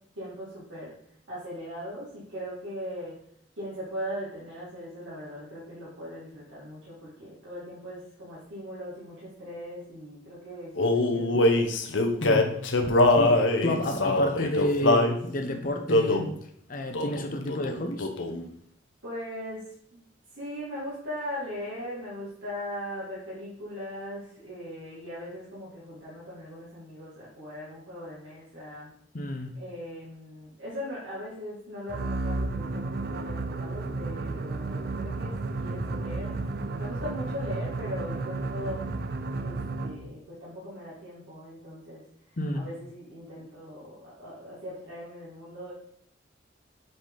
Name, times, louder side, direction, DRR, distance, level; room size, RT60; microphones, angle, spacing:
voice 1, 0.1-1.0 1.3-3.1 3.6-11.7 19.0-20.0 20.4-28.9 29.5-36.4 36.7-38.9 39.4-42.0 42.5-45.7, equal, 85° right, -8 dB, 2.2 m, -39 dB
Male singing, 10.8-15.2 15.9-16.3 16.9-17.2 17.5-18.4, left 2 dB, 80° left, 0.8 m, -23 dB
voice 2, 12.2-12.6 13.2-16.3 16.7-18.1 29.1-29.5 42.4-42.7, left 1 dB, 45° left, 6 dB, 0.8 m, -30 dB
sound 1, 31.9-40.1, right 3 dB, 55° right, 0.5 m, -32 dB
7.6 x 4.2 x 3.9 m, 0.67 s
head